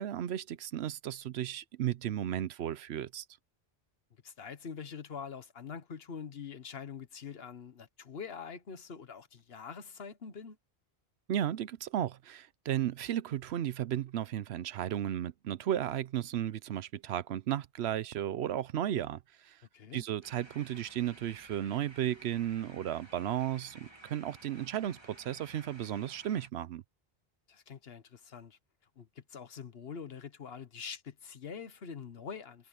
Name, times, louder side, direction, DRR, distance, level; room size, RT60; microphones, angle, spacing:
voice 1, 0.0-3.2 11.3-19.6 19.9-26.8, right 11 dB, 90° right, 0.9 m, -34 dB
voice 2, 4.2-10.6 19.7-20.1 27.5-28.6 29.0-32.7, left 6 dB, 70° left, 1.4 m, -44 dB
sound 1, 20.2-26.5, right 1 dB, 25° right, 2.5 m, -55 dB
omnidirectional pair, 1.0 m